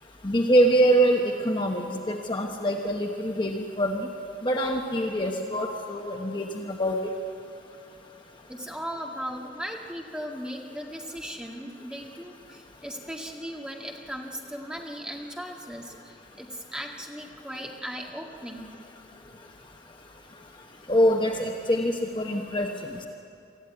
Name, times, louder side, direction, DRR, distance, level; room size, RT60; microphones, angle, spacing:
voice 1, 0.2-4.0 4.4-7.0 20.9-22.7, right 1 dB, 25° left, 2 dB, 1.1 m, -24 dB
voice 2, 8.5-18.7, equal, 5° right, -1 dB, 2.0 m, -37 dB
24.0 x 14.0 x 9.5 m, 2.6 s
head